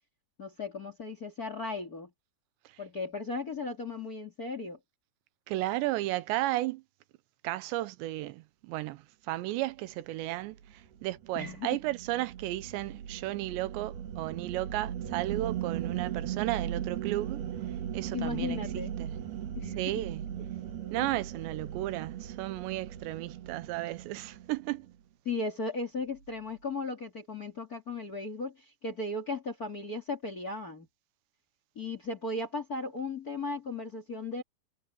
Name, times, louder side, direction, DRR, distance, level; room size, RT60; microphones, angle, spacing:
voice 1, 0.4-2.1 2.8-4.8 11.3-11.8 18.1-18.9 19.6-19.8 25.2-30.9 31.8-34.4, left 3 dB, 30° left, 1.9 m, -36 dB
voice 2, 5.5-6.8 7.4-17.4 17.9-19.2 19.8-20.3 20.9-24.9, right 16 dB, 85° right, 3.1 m, -34 dB
sound 1, 10.4-24.9, right 10 dB, 65° right, 4.0 m, -38 dB
omnidirectional pair, 4.9 m